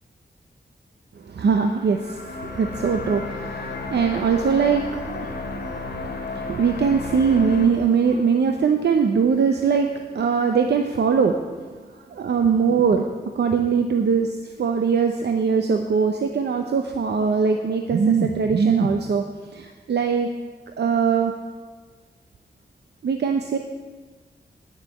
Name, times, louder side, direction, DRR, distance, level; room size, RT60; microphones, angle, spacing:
voice 1, 1.2-11.7 12.1-13.1 13.3-19.2 19.5-20.3 20.8-21.3 23.0-23.6, right 6 dB, 75° right, 4 dB, 0.7 m, -21 dB
sound 1, 1.5-7.7, left 3 dB, 70° left, 2.1 m, -33 dB
9.2 x 7.3 x 8.3 m, 1.4 s
wide cardioid pair, 115°, 17 cm